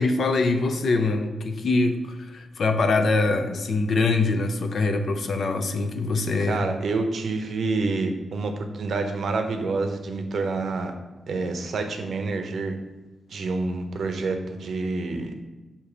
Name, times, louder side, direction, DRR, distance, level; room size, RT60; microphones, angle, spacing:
voice 1, 0.0-6.7, left 3 dB, 55° left, 7 dB, 0.5 m, -23 dB
voice 2, 6.4-10.9 11.3-12.7 13.3-15.3, right 3 dB, 60° right, 6 dB, 0.6 m, -28 dB
6.9 x 2.8 x 4.9 m, 1.1 s
wide cardioid pair, 155°, 0 cm